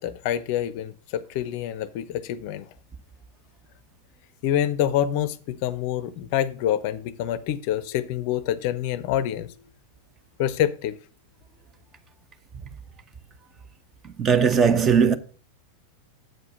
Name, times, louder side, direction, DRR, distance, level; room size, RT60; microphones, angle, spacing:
voice 1, 0.0-2.7 4.4-9.5 10.4-11.0, left 11 dB, 45° left, 0.5 m, -26 dB
voice 2, 14.0-15.2, right 6 dB, 25° right, 0.8 m, -19 dB
7.8 x 4.8 x 6.5 m
figure-of-eight pair, 90°, 0 cm